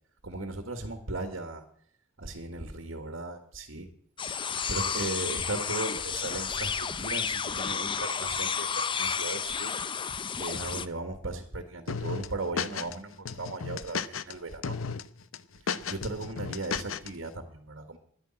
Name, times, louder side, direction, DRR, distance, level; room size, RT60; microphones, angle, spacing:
voice 1, 0.2-1.6 2.2-3.9 4.7-9.7 10.4-14.8 15.6-18.0, right 2 dB, 70° right, 6 dB, 1.6 m, -37 dB
sound 1, 4.2-10.9, left 6 dB, 25° left, 0.5 m, -31 dB
sound 2, 11.9-13.0 13.3-14.3 14.6-15.0 15.3-17.1, left 6 dB, 80° left, 0.7 m, -33 dB
11.5 x 9.9 x 8.8 m, 0.63 s
head